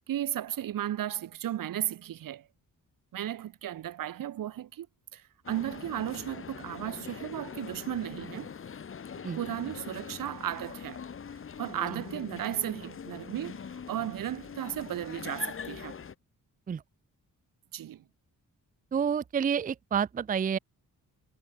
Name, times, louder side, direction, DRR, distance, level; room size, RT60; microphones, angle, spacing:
voice 1, 0.1-2.5 3.1-4.9 5.1-8.5 9.4-11.0 11.6-13.6 13.9-16.0 17.7-18.0, right 11 dB, 75° right, 1.3 m, -35 dB
sound 1, 5.4-16.1, left 7 dB, 40° left, 2.2 m, -43 dB
voice 2, 18.9-20.6, right 7 dB, 25° right, 0.5 m, -29 dB
wide cardioid pair, 170°, 33 cm